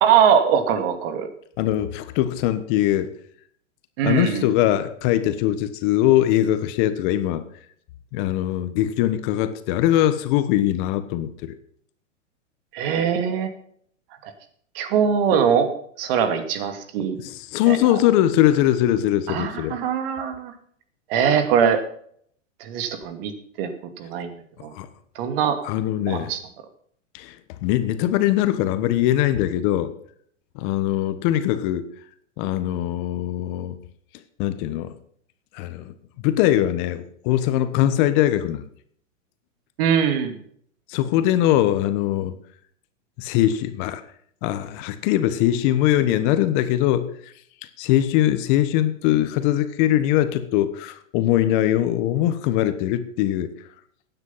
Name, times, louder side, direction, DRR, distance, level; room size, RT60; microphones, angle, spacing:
voice 1, 0.0-1.3 4.0-4.5 12.7-13.5 14.2-14.3 14.7-15.7 16.0-17.2 17.7-18.0 19.3-20.5 21.1-21.8 22.6-23.3 23.6-23.7 24.0-24.3 24.6-24.7 25.2-25.6 26.1-26.4 39.8-40.4, right 7 dB, 50° right, 9 dB, 2.5 m, -21 dB
voice 2, 1.6-3.1 4.0-7.4 8.1-11.5 17.2-19.8 24.7-24.9 25.6-26.3 27.1-29.9 30.5-31.9 32.4-33.8 34.4-34.9 35.5-35.9 36.2-38.6 40.9-42.3 43.2-44.0 44.4-47.3 47.8-53.5, left 13 dB, 40° left, 11 dB, 1.3 m, -21 dB
15.5 x 9.8 x 5.7 m, 0.63 s
hypercardioid pair, 130°, 38 cm